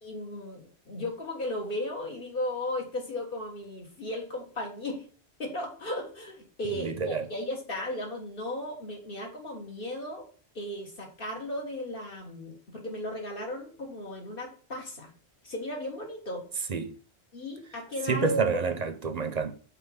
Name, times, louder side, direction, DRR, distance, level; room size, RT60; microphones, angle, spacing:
voice 1, 0.0-5.1 5.4-10.3 10.6-15.1 15.4-16.4 17.3-18.6, left 1 dB, 60° left, 1.8 m, -35 dB
voice 2, 6.8-7.3 16.7-17.0 18.1-19.5, right 4 dB, 45° right, 0.7 m, -29 dB
5.6 x 4.3 x 5.4 m
omnidirectional pair, 1.1 m